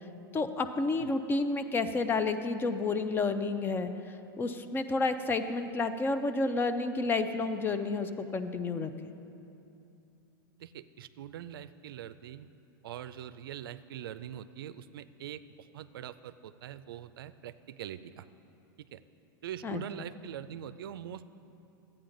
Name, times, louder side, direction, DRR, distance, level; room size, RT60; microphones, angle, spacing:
voice 1, 0.3-3.9 4.4-8.9 19.6-19.8, left 3 dB, 20° left, 10 dB, 0.5 m, -30 dB
voice 2, 10.6-12.5 12.8-18.3 18.8-19.0 19.4-21.3, right 10 dB, 80° right, 13 dB, 0.4 m, -43 dB
13.0 x 8.8 x 3.9 m, 2.7 s
hypercardioid pair, 125°, 12 cm